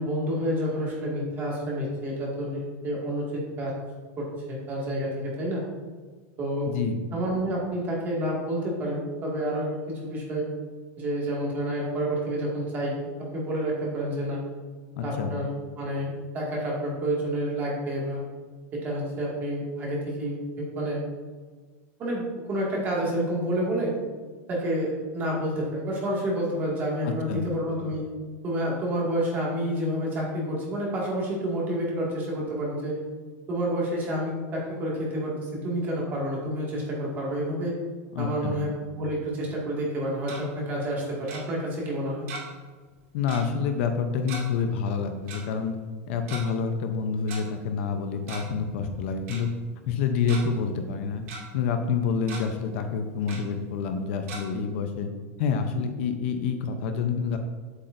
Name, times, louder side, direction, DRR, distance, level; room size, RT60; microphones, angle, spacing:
voice 1, 0.0-3.7 4.2-5.6 6.4-6.7 7.1-10.5 11.0-14.4 15.0-18.2 18.7-21.0 22.0-24.0 24.5-28.0 28.4-33.0 33.5-35.4 35.6-37.7 38.2-42.3, equal, 25° right, -4 dB, 2.0 m, -29 dB
voice 2, 6.7-7.0 15.0-15.3 27.0-27.4 38.1-38.6 43.1-45.8 46.1-49.5 49.9-51.2 51.5-55.1 55.4-57.4, left 6 dB, 50° left, 6 dB, 0.7 m, -28 dB
Tick-tock, 40.0-40.4 41.3-41.4 42.3-42.6 42.9-43.0 43.3-43.5 44.3-44.4 45.3-45.4 46.1-46.4 47.3-47.4 48.1-48.6 48.8-48.9 49.3-49.4 49.9-50.4 50.9-51.4 51.8-51.9 52.2-52.4 53.3-53.4 54.3-54.4, right 4 dB, 55° right, 2.3 m, -38 dB
8.1 x 7.7 x 2.6 m, 1.4 s
supercardioid pair, 170°, 8 cm